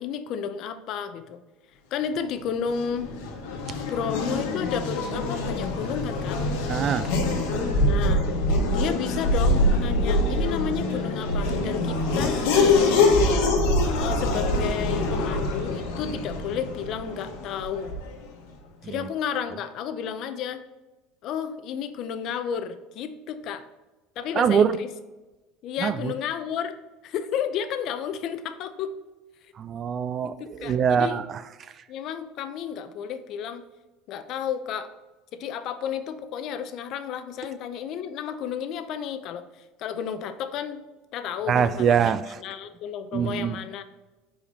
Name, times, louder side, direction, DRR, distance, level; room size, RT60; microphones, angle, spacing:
voice 1, 0.0-1.4 1.9-3.1 3.9-6.4 7.8-8.3 8.7-13.0 13.9-17.9 18.8-20.6 21.2-23.6 24.2-24.9 25.6-28.9 30.2-31.2 31.9-33.6 34.1-34.9 35.3-39.4 39.8-40.8 41.1-41.9 42.4-43.8, left 7 dB, 50° left, 10 dB, 0.6 m, -32 dB
Race car auto racing / Accelerating revving vroom, 2.6-18.2, left 2 dB, 85° left, 1.3 m, -24 dB
voice 2, 6.7-7.1 18.8-19.1 24.3-24.7 25.8-26.1 29.6-31.4 41.5-42.4 43.1-43.6, right 7 dB, 35° right, 13 dB, 0.3 m, -24 dB
5.1 x 5.0 x 4.1 m, 1.1 s
cardioid pair, 140°, 0 cm